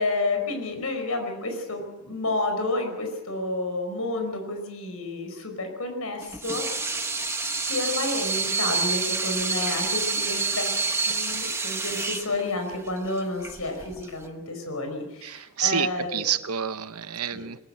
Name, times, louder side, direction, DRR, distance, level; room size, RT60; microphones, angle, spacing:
voice 1, 0.0-7.1 7.7-10.7 11.1-16.3 17.3-17.5, left 2 dB, 85° left, 5.2 m, -30 dB
Water tap faucet / Sink (filling or washing), 6.2-14.3, right 4 dB, 10° right, 1.1 m, -28 dB
voice 2, 15.2-17.6, right 9 dB, 90° right, 0.9 m, -28 dB
21.0 x 20.5 x 7.8 m
head